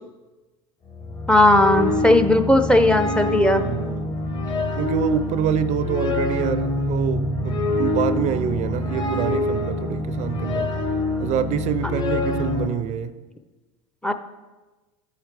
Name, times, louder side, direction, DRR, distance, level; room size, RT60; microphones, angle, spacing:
sound 1, 0.9-12.7, left 2 dB, 30° left, 1.1 m, -25 dB
voice 1, 1.3-3.6 14.0-14.1, left 1 dB, 5° left, 8 dB, 0.5 m, -17 dB
voice 2, 3.4-4.3 4.8-10.7 11.2-13.2, right 9 dB, 45° right, 13 dB, 0.4 m, -26 dB
13.0 x 4.8 x 3.3 m, 1.2 s
supercardioid pair, 100°, 16 cm